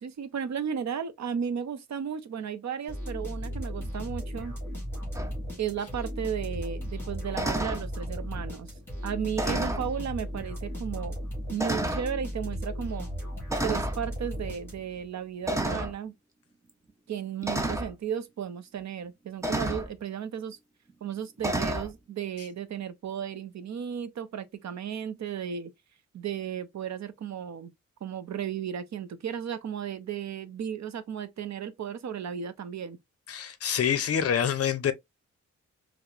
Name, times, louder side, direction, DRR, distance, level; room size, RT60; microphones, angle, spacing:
voice 1, 0.0-4.6 5.6-8.7 9.0-11.2 11.5-13.1 13.6-16.1 17.1-20.6 21.0-25.7 26.1-27.7 28.0-33.0, right 8 dB, 65° right, 0.5 m, -34 dB
sound 1, 2.9-15.1, equal, 5° left, 2.0 m, -36 dB
sound 2, 5.1-5.3 7.3-7.8 9.3-9.9 10.7-10.8 11.6-12.1 13.5-14.0 15.5-15.9 17.4-17.9 19.4-19.9 21.4-21.9, right 1 dB, 10° right, 0.4 m, -30 dB
voice 2, 33.3-34.9, left 8 dB, 55° left, 0.5 m, -26 dB
4.6 x 2.0 x 2.5 m
wide cardioid pair, 180°, 30 cm